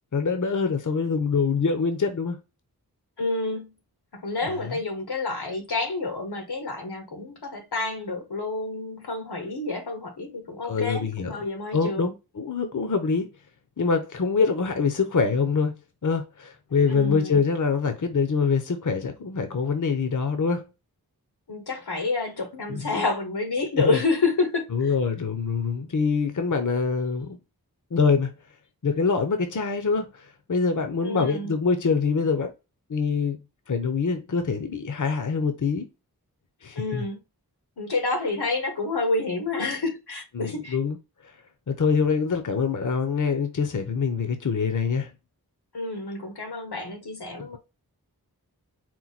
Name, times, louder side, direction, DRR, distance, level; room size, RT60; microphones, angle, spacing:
voice 1, 0.1-2.4 4.4-4.7 10.6-11.4 11.7-13.3 13.8-20.7 22.7-22.9 23.8-24.0 24.7-27.4 27.9-28.3 28.8-32.5 32.9-33.4 33.7-35.9 36.6-37.0 40.4-41.0 41.7-45.1, left 5 dB, 55° left, 0.7 m, -25 dB
voice 2, 3.2-3.7 4.1-12.1 16.9-17.4 21.5-24.6 31.0-31.5 36.7-37.2 37.8-40.8 45.7-47.6, left 3 dB, 85° left, 1.2 m, -29 dB
4.6 x 2.2 x 4.0 m
wide cardioid pair, 50°, 38 cm